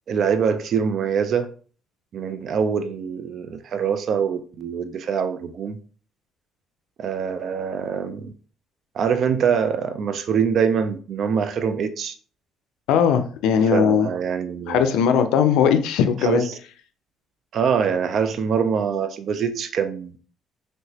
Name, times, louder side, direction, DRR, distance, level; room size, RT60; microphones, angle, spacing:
voice 1, 0.1-1.5 2.1-5.8 7.0-8.3 8.9-12.1 13.7-15.0 16.2-16.6 17.5-20.1, right 7 dB, 60° right, 0.4 m, -24 dB
voice 2, 12.9-14.1 14.7-16.4, left 7 dB, 80° left, 0.4 m, -19 dB
3.2 x 2.8 x 2.8 m
supercardioid pair, 75°, 0 cm